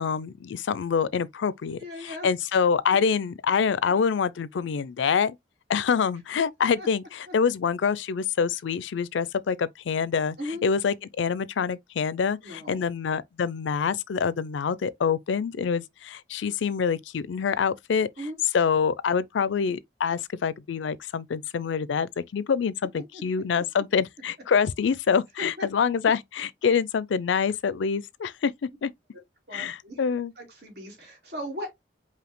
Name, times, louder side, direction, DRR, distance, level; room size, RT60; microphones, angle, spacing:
voice 1, 0.0-5.4 5.7-10.4 10.6-18.1 18.5-28.5 28.8-28.9 29.5-30.3, left 6 dB, 85° left, 0.4 m, -26 dB
voice 2, 1.8-2.3 6.8-6.9 7.3-7.4 10.4-10.6 12.4-12.8 18.2-18.4 23.1-23.2 25.6-25.7 29.5-30.0 30.4-31.7, equal, 60° right, 2.2 m, -37 dB
5.0 x 2.7 x 3.1 m
head